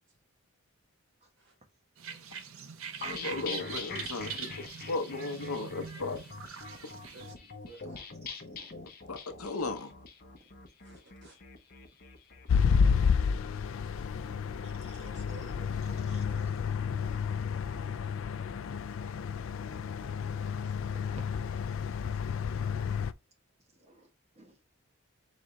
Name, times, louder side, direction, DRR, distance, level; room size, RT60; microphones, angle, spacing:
sound 1, 2.0-7.3, right 7 dB, 70° right, 0.6 m, -43 dB
sound 2, 3.0-12.5, left 4 dB, 40° left, 0.7 m, -44 dB
voice 1, 3.1-6.2 6.8-6.9 9.1-9.9, left 3 dB, 85° left, 0.7 m, -36 dB
voice 2, 7.1-8.0 10.8-11.4 13.5-16.6, right 2 dB, 50° right, 1.6 m, -55 dB
voice 3, 7.9-8.8 14.8-15.1 16.1-16.2 20.7-20.8 23.8-24.1 24.4-24.6, right 2 dB, 30° right, 1.0 m, -58 dB
sound 3, 12.5-23.1, left 6 dB, 65° left, 0.3 m, -30 dB
4.0 x 3.6 x 3.1 m
head